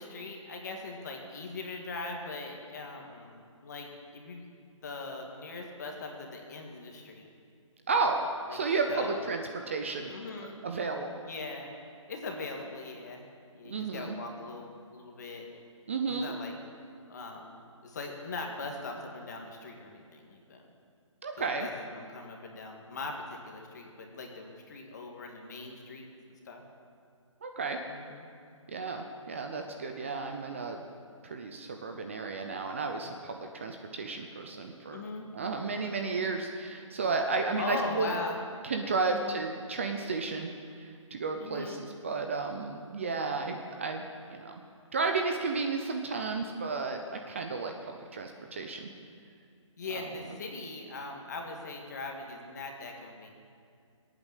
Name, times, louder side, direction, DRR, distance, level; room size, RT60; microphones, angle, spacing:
voice 1, 0.0-4.5 4.8-7.3 8.5-8.6 8.9-9.3 10.1-10.6 11.3-11.7 12.1-13.3 13.5-15.5 16.1-16.6 17.1-20.6 21.4-26.6 27.9-28.3 34.9-35.3 37.6-38.4 39.1-39.4 41.4-41.8 49.8-53.3, left 3 dB, 35° left, 2 dB, 1.9 m, -40 dB
voice 2, 7.9-10.1 10.6-11.1 13.6-14.1 15.9-16.3 21.2-21.7 27.4-27.8 28.7-30.8 31.2-35.0 35.3-38.1 38.6-44.6 44.9-48.9 49.9-50.1, right 4 dB, 25° right, 4 dB, 0.6 m, -33 dB
20.5 x 9.0 x 7.3 m, 2.3 s
hypercardioid pair, 170°, 17 cm